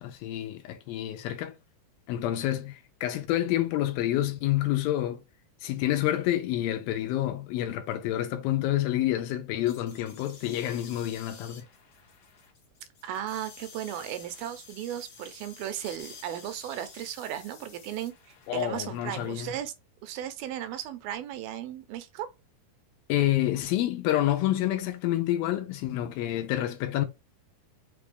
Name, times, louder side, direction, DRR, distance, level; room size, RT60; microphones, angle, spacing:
voice 1, 0.0-1.5 2.1-5.2 5.6-11.7 18.5-19.6 23.1-27.1, left 13 dB, 80° left, 2.3 m, -28 dB
sound 1, 9.7-19.6, left 5 dB, 55° left, 1.6 m, -51 dB
voice 2, 13.0-18.1 18.5-19.7 20.0-22.3, right 11 dB, 80° right, 2.4 m, -36 dB
6.0 x 2.3 x 3.3 m
omnidirectional pair, 4.4 m